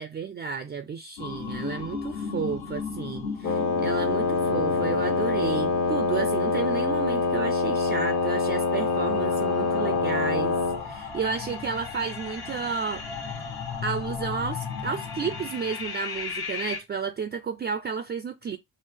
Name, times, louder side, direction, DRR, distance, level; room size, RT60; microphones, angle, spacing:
voice 1, 0.0-10.6 10.8-13.0 13.8-18.6, right 6 dB, 25° right, 0.4 m, -32 dB
sound 1, 1.2-16.8, left 5 dB, 65° left, 1.3 m, -36 dB
Wind instrument woodwind instrument, 3.4-10.9, left 4 dB, 40° left, 0.8 m, -25 dB
3.6 x 2.0 x 3.3 m
supercardioid pair, 65°, 41 cm